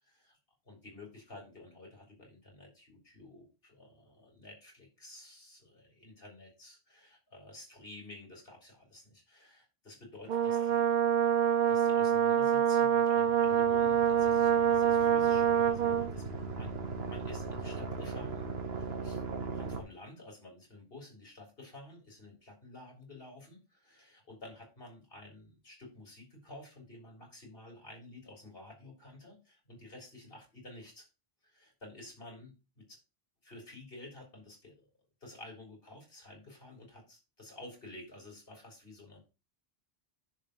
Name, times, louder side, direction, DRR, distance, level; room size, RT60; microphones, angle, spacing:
voice 1, 0.0-0.4 0.7-10.9 11.7-16.3 16.6-16.7 17.1-18.4 18.7-19.2 19.5-31.0 31.5-33.0 33.4-34.8 35.2-39.3, left 2 dB, 65° left, 0 dB, 4.1 m, -51 dB
Brass instrument, 10.3-16.1, right 9 dB, 55° right, 0.7 m, -26 dB
sound 1, 13.2-19.8, right 4 dB, 80° right, 1.5 m, -39 dB
10.5 x 3.8 x 6.6 m, 0.29 s
omnidirectional pair, 1.0 m